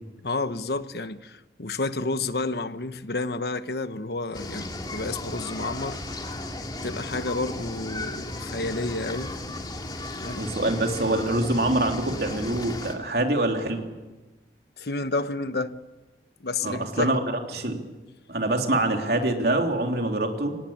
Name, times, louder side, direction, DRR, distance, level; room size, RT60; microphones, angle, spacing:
voice 1, 0.2-6.4 6.8-9.3 10.2-10.4 14.8-15.7 16.4-17.1, left 3 dB, 70° left, 1.1 m, -30 dB
sound 1, 4.3-12.9, left 2 dB, 25° left, 2.6 m, -35 dB
voice 2, 10.4-13.8 16.6-17.2 17.5-17.8 18.3-20.6, right 2 dB, 65° right, 3.4 m, -25 dB
25.5 x 19.5 x 8.8 m
head